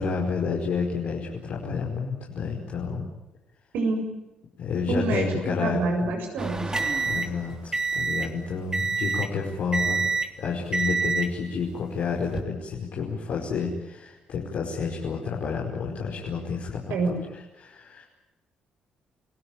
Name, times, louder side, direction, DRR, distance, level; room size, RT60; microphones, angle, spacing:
voice 1, 0.0-3.1 4.6-6.1 7.1-10.1 10.4-16.9 17.6-18.0, left 5 dB, 70° left, -3 dB, 5.3 m, -30 dB
voice 2, 3.7-4.0 4.9-5.3 5.6-6.7 16.9-17.1, right 3 dB, 80° right, 4 dB, 7.5 m, -26 dB
sound 1, 6.4-8.4 8.7-9.4 9.7-10.4 10.7-11.4 12.1-12.4, right 4 dB, 20° right, 3.4 m, -27 dB
30.0 x 17.0 x 9.0 m, 1.0 s
supercardioid pair, 60°, 3 cm